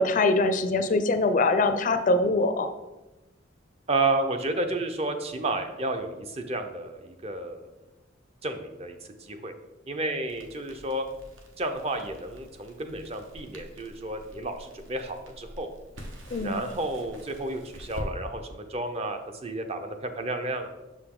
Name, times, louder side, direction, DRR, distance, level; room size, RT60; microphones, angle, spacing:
voice 1, 0.0-2.7 16.3-16.6, left 2 dB, 40° left, 9 dB, 0.4 m, -23 dB
voice 2, 3.9-7.7 8.4-9.5 9.9-11.1 11.6-15.7 16.4-20.7, right 2 dB, 30° right, 6 dB, 0.5 m, -31 dB
Crackle, 10.2-18.1, equal, 80° right, 1.0 m, -45 dB
6.5 x 4.9 x 3.7 m, 1.0 s
head